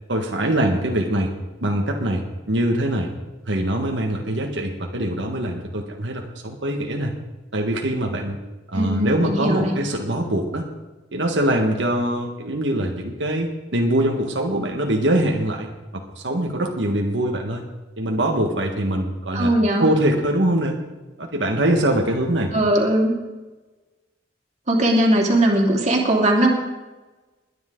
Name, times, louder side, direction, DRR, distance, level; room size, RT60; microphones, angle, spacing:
voice 1, 0.1-1.3 1.6-3.1 3.5-7.1 7.5-8.4 8.7-10.6 11.1-15.7 15.9-17.6 18.0-19.5 19.8-20.8 21.2-22.5, right 1 dB, 90° right, 1 dB, 1.6 m, -23 dB
voice 2, 8.7-9.7 19.3-19.9 22.5-23.2 24.7-26.5, right 1 dB, 40° right, -1 dB, 2.8 m, -19 dB
21.0 x 10.0 x 3.9 m, 1.1 s
head